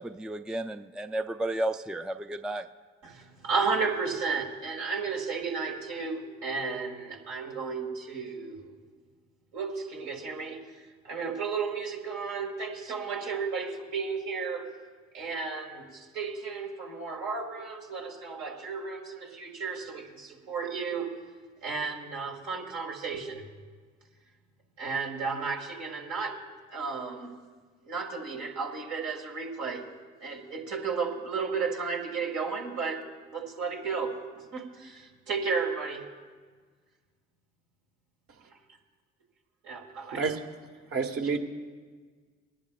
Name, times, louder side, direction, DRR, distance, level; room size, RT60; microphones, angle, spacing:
voice 1, 0.0-2.7, right 1 dB, ahead, 10 dB, 0.4 m, -33 dB
voice 2, 3.0-8.8 9.5-10.6 11.0-14.7 15.1-21.3 21.6-23.5 24.8-26.4 26.7-27.4 27.8-29.9 30.2-36.1 39.7-40.2, right 5 dB, 70° right, 0 dB, 1.9 m, -33 dB
voice 3, 40.1-40.4 40.9-41.4, right 5 dB, 50° right, 4 dB, 1.4 m, -29 dB
21.5 x 11.0 x 2.4 m, 1.5 s
hypercardioid pair, 50°, 29 cm